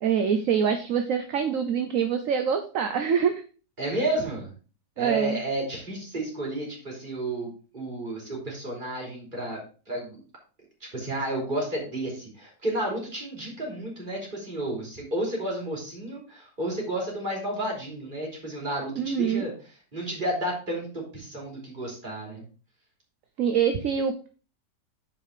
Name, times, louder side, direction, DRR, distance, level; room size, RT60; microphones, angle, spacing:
voice 1, 0.0-3.4 5.0-5.4 19.0-19.5 23.4-24.3, right 7 dB, 60° right, 7 dB, 1.1 m, -25 dB
voice 2, 3.8-4.5 5.0-9.6 9.9-10.2 10.8-19.5 19.9-22.4, right 1 dB, 30° right, -2 dB, 3.4 m, -31 dB
8.5 x 5.0 x 4.8 m, 0.37 s
omnidirectional pair, 1.8 m